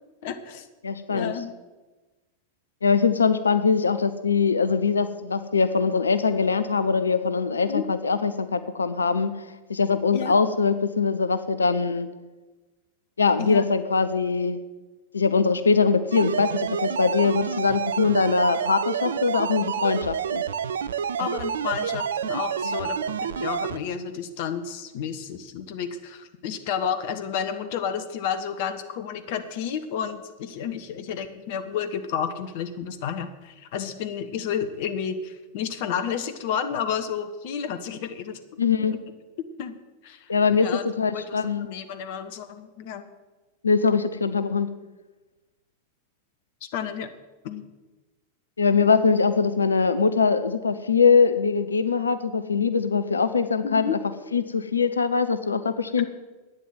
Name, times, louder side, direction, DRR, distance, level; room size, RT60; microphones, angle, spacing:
voice 1, 0.2-0.7 1.1-1.5 7.7-7.8 10.1-10.4 13.4-13.6 21.2-38.4 38.8-39.0 39.6-39.8 40.0-40.3 40.6-40.8 41.1-43.0 46.7-47.1 47.4-47.6 53.6-54.0, left 8 dB, 50° left, 9 dB, 1.1 m, -31 dB
voice 2, 0.8-1.3 2.8-9.3 9.7-12.1 13.2-14.6 15.1-20.4 22.6-22.8 38.6-39.0 40.3-41.7 43.6-44.7 48.6-54.0 54.3-56.0, left 5 dB, 75° left, 12 dB, 0.7 m, -22 dB
sound 1, 16.1-23.8, right 7 dB, 65° right, 0.5 m, -28 dB
11.0 x 9.5 x 9.2 m, 1.2 s
figure-of-eight pair, 90°, 0 cm